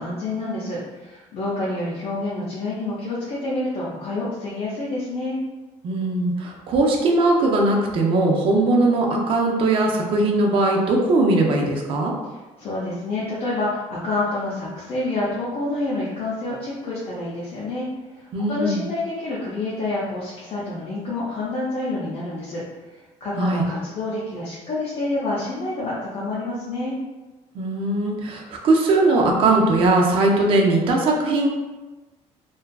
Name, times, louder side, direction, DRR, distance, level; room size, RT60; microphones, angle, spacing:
voice 1, 0.0-5.4 12.6-17.9 18.1-22.6 23.2-27.0, left 2 dB, 45° left, -8 dB, 0.5 m, -28 dB
voice 2, 5.8-12.1 18.3-18.8 23.4-23.6 27.5-31.5, right 2 dB, 45° right, 0 dB, 0.4 m, -20 dB
2.6 x 2.3 x 2.2 m, 1.2 s
cardioid pair, 170°, 13 cm